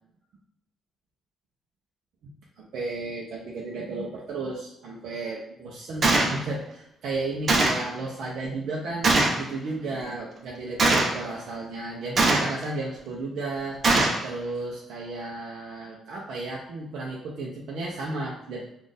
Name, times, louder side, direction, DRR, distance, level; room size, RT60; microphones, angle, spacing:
voice 1, 2.6-13.9 14.2-18.6, right 2 dB, 75° right, -3 dB, 0.6 m, -33 dB
Gunshot gunfire, 6.0-6.3 7.5-7.9 9.0-9.4 10.8-11.2 12.2-12.6 13.8-14.2, right 2 dB, 45° right, 0.8 m, -21 dB
4.2 x 2.5 x 3.4 m, 0.83 s
cardioid pair, 90°, 0 cm